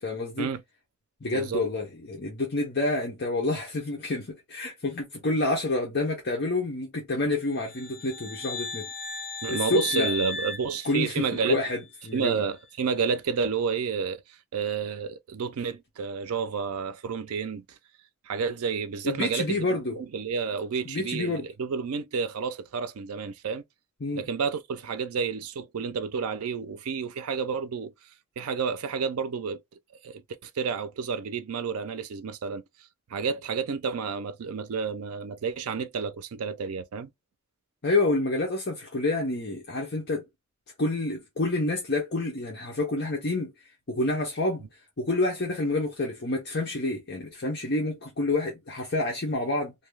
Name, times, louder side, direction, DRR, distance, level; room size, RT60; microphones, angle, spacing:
voice 1, 0.0-0.5 1.2-8.9 9.5-10.1 10.8-12.4 19.0-20.0 20.9-21.5 24.0-24.2 37.8-40.3 40.8-43.5 43.9-44.6 45.0-49.7, left 2 dB, 50° left, 0.7 m, -28 dB
voice 2, 1.3-1.6 9.4-11.6 12.1-14.2 14.5-17.6 18.3-19.6 20.0-23.6 24.1-27.9 28.4-29.6 30.0-32.6 33.1-37.1, right 5 dB, 90° right, 0.4 m, -30 dB
sound 1, 7.6-11.6, left 4 dB, 65° left, 1.4 m, -36 dB
2.6 x 2.2 x 3.2 m
head